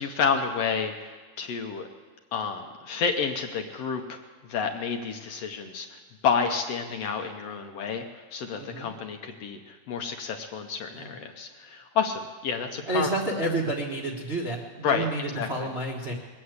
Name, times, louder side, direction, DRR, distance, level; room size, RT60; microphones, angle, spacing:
voice 1, 0.0-1.9 2.3-4.2 4.5-13.1 14.8-15.1 15.4-15.7, left 6 dB, 65° left, 4 dB, 1.7 m, -30 dB
voice 2, 8.5-8.9 10.9-11.1 12.9-16.1, right 2 dB, 35° right, -3 dB, 1.0 m, -30 dB
21.0 x 8.6 x 8.0 m, 1.4 s
omnidirectional pair, 3.4 m